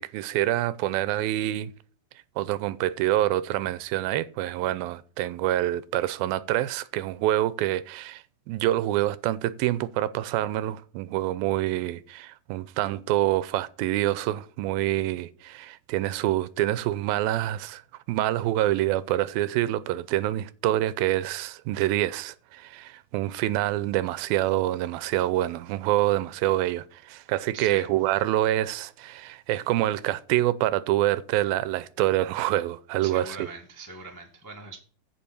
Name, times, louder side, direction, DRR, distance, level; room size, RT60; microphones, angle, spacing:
voice 1, 0.0-1.7 2.4-17.8 18.1-33.5, right 14 dB, 90° right, 2.4 m, -26 dB
voice 2, 27.5-27.9 33.0-34.8, right 3 dB, 20° left, 0.5 m, -41 dB
15.0 x 5.2 x 4.3 m
omnidirectional pair, 4.2 m